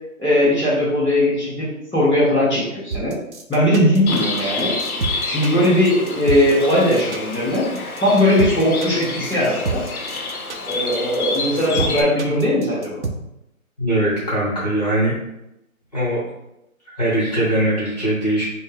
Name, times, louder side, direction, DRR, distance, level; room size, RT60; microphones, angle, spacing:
voice 1, 0.2-3.1 3.5-4.7 5.3-9.8 10.7-13.0, left 1 dB, ahead, -23 dB, 0.9 m, -19 dB
sound 1, 2.9-13.1, right 4 dB, 55° right, 0.5 m, -28 dB
Bird, 4.1-12.0, left 3 dB, 85° left, 0.7 m, -28 dB
voice 2, 13.8-15.1 15.9-16.2 17.0-18.4, right 1 dB, 30° left, -7 dB, 0.9 m, -20 dB
4.5 x 2.1 x 3.5 m, 0.87 s
hypercardioid pair, 180°, 43 cm